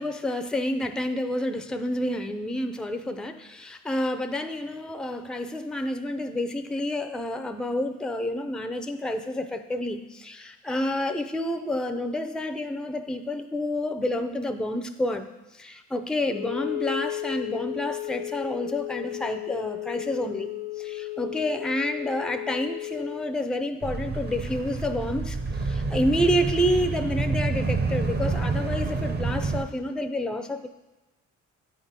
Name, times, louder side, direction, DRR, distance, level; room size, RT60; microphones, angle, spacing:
voice 1, 0.0-15.3 15.5-30.7, left 1 dB, ahead, 8 dB, 0.5 m, -29 dB
Wind instrument woodwind instrument, 16.2-23.4, left 15 dB, 85° left, 0.6 m, -34 dB
sound 1, 23.8-29.6, right 3 dB, 35° right, 0.9 m, -28 dB
8.9 x 3.7 x 5.7 m, 1.1 s
cardioid pair, 90°, 30 cm